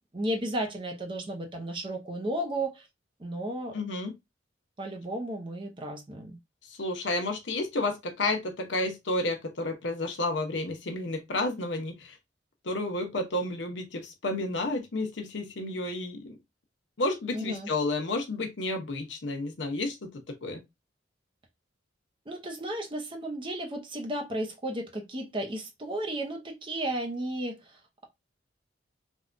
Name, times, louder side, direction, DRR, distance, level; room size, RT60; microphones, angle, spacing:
voice 1, 0.1-2.9 3.2-3.8 4.8-6.4 17.3-17.7 22.3-28.1, right 1 dB, 25° right, 0.6 m, -34 dB
voice 2, 3.7-4.1 6.8-12.2 12.6-16.4 17.0-20.6, left 2 dB, 75° left, 0.8 m, -31 dB
3.4 x 2.2 x 2.5 m
head